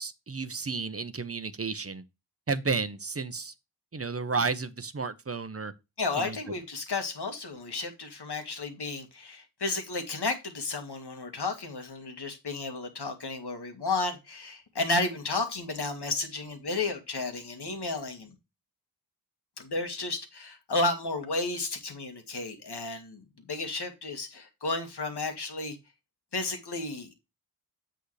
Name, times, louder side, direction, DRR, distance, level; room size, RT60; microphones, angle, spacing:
voice 1, 0.0-2.0 2.5-3.5 3.9-5.7 6.2-6.4, right 4 dB, 35° right, 0.9 m, -32 dB
voice 2, 6.0-18.3 19.6-25.8 26.3-27.1, left 3 dB, 70° left, 1.9 m, -32 dB
8.2 x 6.5 x 3.3 m
wide cardioid pair, 70°, 41 cm